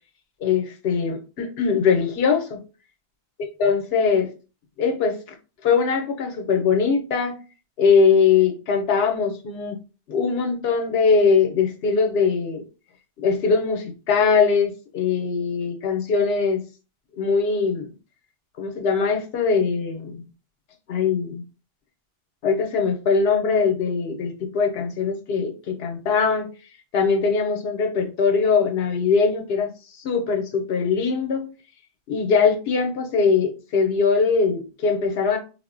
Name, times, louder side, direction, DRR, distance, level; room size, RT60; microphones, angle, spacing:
voice 1, 0.4-2.6 3.6-4.3 4.8-5.2 5.6-7.3 7.8-9.8 10.1-12.6 13.2-16.6 17.2-17.9 18.6-20.3 20.9-21.4 22.4-26.5 26.9-29.7 30.0-31.5 32.1-35.4, left 5 dB, 80° left, 0.9 m, -21 dB
3.7 x 2.0 x 2.5 m
omnidirectional pair, 1.0 m